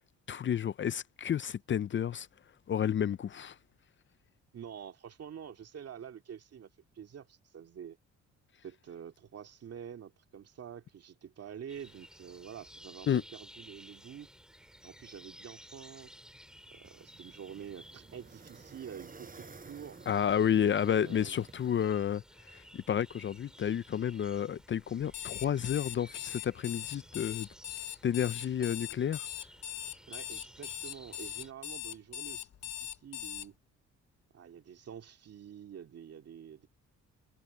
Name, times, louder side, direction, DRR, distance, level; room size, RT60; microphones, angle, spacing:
voice 1, 0.3-2.3 2.7-3.6 13.1-13.2 20.1-22.2 22.5-27.5 28.0-29.3, left 9 dB, 40° left, 0.5 m, -31 dB
voice 2, 4.5-8.0 8.6-14.3 14.8-16.1 16.7-20.0 20.6-21.5 28.6-28.7 30.1-33.6 34.3-36.7, right 8 dB, 55° right, 2.3 m, -47 dB
sound 1, 11.7-31.5, equal, ahead, 3.8 m, -56 dB
sound 2, 16.9-21.9, right 4 dB, 30° right, 4.4 m, -54 dB
Alarm, 25.0-33.5, left 11 dB, 60° left, 1.0 m, -40 dB
cardioid pair, 90°, 30 cm